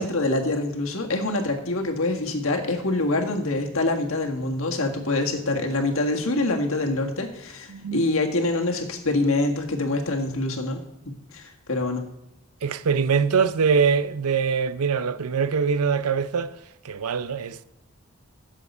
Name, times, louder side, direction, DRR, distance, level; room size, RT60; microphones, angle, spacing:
voice 1, 0.0-12.0, left 2 dB, 65° left, 1.6 m, -25 dB
voice 2, 7.7-8.0 12.6-16.5 16.8-17.6, right 6 dB, 85° right, 0.6 m, -23 dB
12.5 x 7.5 x 5.4 m
head